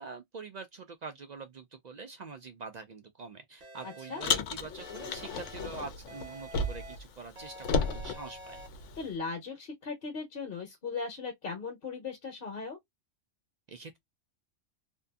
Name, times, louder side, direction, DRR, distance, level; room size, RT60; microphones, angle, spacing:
voice 1, 0.0-8.6 13.7-14.0, right 4 dB, 65° right, 0.4 m, -45 dB
sound 1, 3.6-4.4 4.8-5.7 6.1-7.0 7.4-8.7, right 1 dB, 40° right, 0.8 m, -48 dB
voice 2, 3.8-4.2 9.0-12.8, left 4 dB, 50° left, 1.0 m, -38 dB
Car, 4.2-7.0 7.3-9.1, left 4 dB, 80° left, 0.9 m, -33 dB
2.7 x 2.5 x 2.2 m
omnidirectional pair, 1.2 m